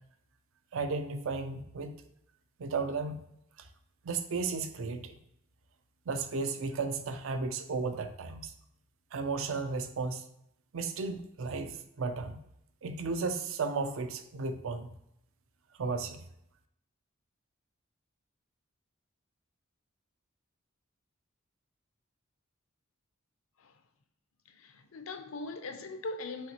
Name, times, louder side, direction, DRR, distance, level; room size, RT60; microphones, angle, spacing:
voice 1, 0.7-1.9 2.6-3.2 3.6-3.7 4.0-5.2 6.1-8.5 9.1-10.2 10.7-12.4 12.8-14.9 15.8-16.2, right 4 dB, 70° right, 0.5 m, -34 dB
voice 2, 24.5-26.5, left 2 dB, 75° left, 0.5 m, -40 dB
5.8 x 2.9 x 2.8 m
head